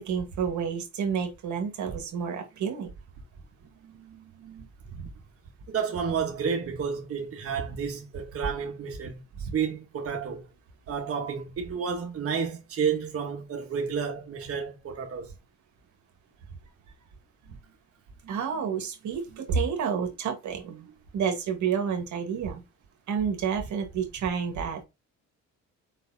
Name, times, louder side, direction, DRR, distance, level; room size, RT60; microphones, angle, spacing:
voice 1, 0.0-2.9 9.4-9.5 18.3-20.9 21.1-22.6 23.1-24.8, right 7 dB, 70° right, 1.4 m, -29 dB
voice 2, 3.8-5.1 5.7-10.4 10.9-15.3 17.5-17.6 18.2-18.6 19.3-19.4, right 6 dB, 50° right, 1.2 m, -32 dB
4.7 x 4.0 x 2.7 m
cardioid pair, 90°, 30 cm